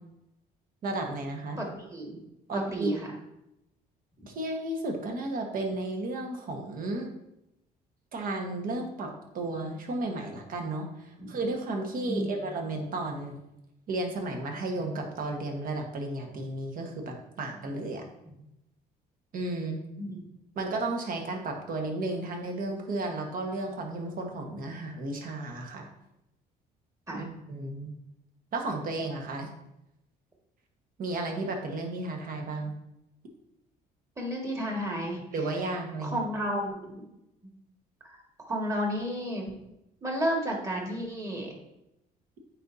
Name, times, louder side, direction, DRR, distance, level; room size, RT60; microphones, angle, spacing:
voice 1, 0.8-1.6 2.5-2.9 4.3-7.1 8.1-10.9 11.3-13.4 13.9-18.0 19.3-19.8 20.5-25.9 27.1-27.9 28.5-29.5 31.0-32.7 35.3-36.2, right 2 dB, 55° right, 3 dB, 1.4 m, -33 dB
voice 2, 1.6-2.2 2.5-3.1 11.2-11.4 12.1-12.4 20.0-20.2 27.1-27.3 34.2-35.2 36.0-37.0 38.5-39.6 40.0-41.5, equal, 20° right, -1 dB, 1.8 m, -32 dB
8.9 x 4.2 x 2.7 m, 0.86 s
cardioid pair, 110°, 17 cm